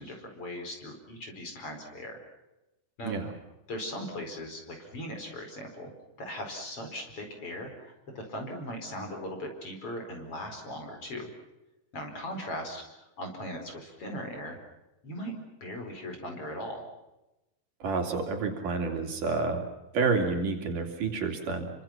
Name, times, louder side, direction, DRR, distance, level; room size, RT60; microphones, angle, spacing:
voice 1, 0.0-2.2 3.0-3.2 3.7-5.9 6.2-11.3 11.9-14.6 15.0-16.8, equal, 35° left, 3 dB, 5.5 m, -39 dB
voice 2, 17.8-19.6 19.9-21.7, right 4 dB, 60° right, 3 dB, 4.5 m, -29 dB
29.5 x 25.0 x 5.9 m, 0.97 s
omnidirectional pair, 4.3 m